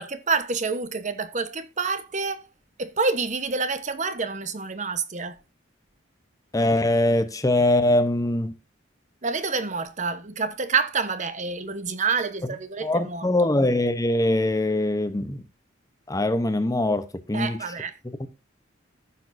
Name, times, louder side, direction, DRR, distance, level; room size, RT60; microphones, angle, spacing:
voice 1, 0.0-2.4 2.8-5.4 9.2-13.3 17.3-17.9, right 4 dB, 40° right, 1.0 m, -28 dB
voice 2, 6.5-8.6 12.8-15.4 16.1-17.6 18.2-18.3, left 1 dB, 15° left, 0.8 m, -22 dB
15.0 x 6.3 x 2.6 m
head